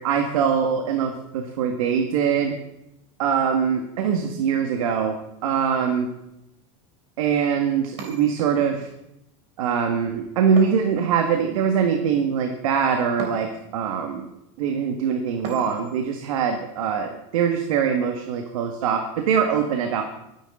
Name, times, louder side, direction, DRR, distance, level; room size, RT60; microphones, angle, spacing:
voice 1, 0.0-2.6 3.2-6.1 7.2-8.9 9.6-14.3 14.6-20.0, right 7 dB, 85° right, 4 dB, 1.8 m, -23 dB
sound 1, 8.0-8.9 10.6-11.5 13.2-13.8 15.4-16.1, right 3 dB, 40° right, 3.3 m, -38 dB
23.0 x 10.5 x 3.8 m, 0.85 s
supercardioid pair, 165°, 17 cm